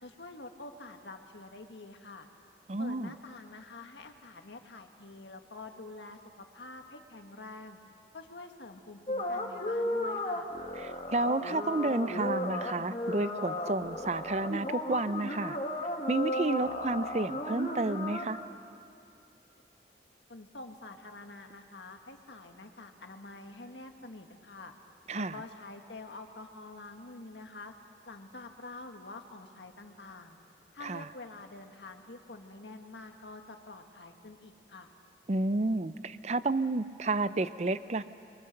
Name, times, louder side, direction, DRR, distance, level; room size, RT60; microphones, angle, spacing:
voice 1, 0.0-2.3 2.8-7.8 8.1-10.5 20.3-24.7 25.1-27.7 28.1-30.4 30.7-34.9, left 2 dB, 90° left, 5 dB, 1.8 m, -47 dB
voice 2, 2.7-3.1 10.8-15.6 16.1-18.4 25.1-25.4 30.8-31.1 35.3-38.0, right 2 dB, 40° right, 14 dB, 0.6 m, -31 dB
sound 1, 9.1-18.3, left 1 dB, 35° left, 1.8 m, -34 dB
29.5 x 23.0 x 6.6 m, 2.7 s
head